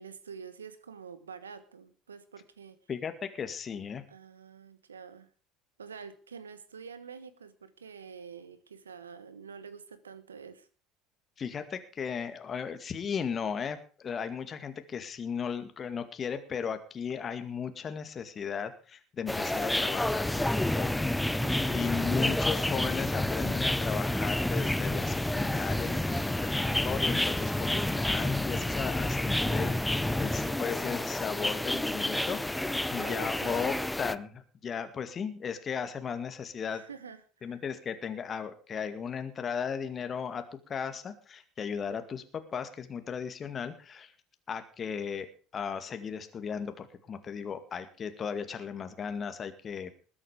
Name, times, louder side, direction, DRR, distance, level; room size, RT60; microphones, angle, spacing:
voice 1, 0.0-2.8 4.1-5.3 5.8-10.7 21.4-22.1 33.0-33.7 36.7-37.6, right 6 dB, 85° right, 14 dB, 1.3 m, -47 dB
voice 2, 2.9-4.0 11.4-21.0 21.4-36.8 37.4-44.1 44.5-45.3 45.5-49.9, left 6 dB, 35° left, 8 dB, 2.1 m, -36 dB
sound 1, 19.3-34.2, left 1 dB, 5° left, 0.7 m, -29 dB
20.5 x 8.7 x 5.1 m, 0.39 s
figure-of-eight pair, 65°, 0 cm